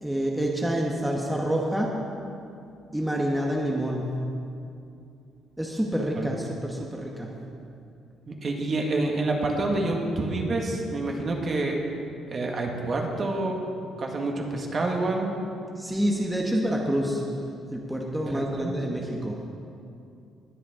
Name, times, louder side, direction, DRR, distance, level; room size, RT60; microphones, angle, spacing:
voice 1, 0.0-1.9 2.9-4.1 5.6-7.3 15.8-17.2 17.7-19.4, right 1 dB, 5° right, -1 dB, 1.1 m, -27 dB
voice 2, 8.3-11.8 12.3-13.6 14.0-15.3 18.3-18.8, right 2 dB, 40° right, 1 dB, 1.7 m, -28 dB
20.5 x 8.0 x 3.7 m, 2.6 s
cardioid pair, 110°, 0 cm